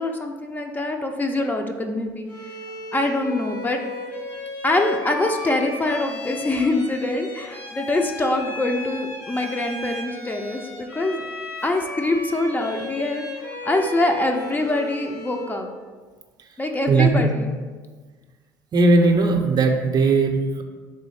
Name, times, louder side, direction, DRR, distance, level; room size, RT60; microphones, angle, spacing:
voice 1, 0.0-2.3 2.9-3.8 4.6-11.3 11.6-15.7 16.6-17.5, left 2 dB, 20° left, 3 dB, 0.5 m, -24 dB
Bowed string instrument, 2.3-15.6, left 3 dB, 90° left, 1.1 m, -35 dB
voice 2, 16.9-17.3 18.7-20.6, right 3 dB, 40° right, 4 dB, 0.6 m, -18 dB
3.7 x 3.1 x 4.3 m, 1.4 s
hypercardioid pair, 70°, 10 cm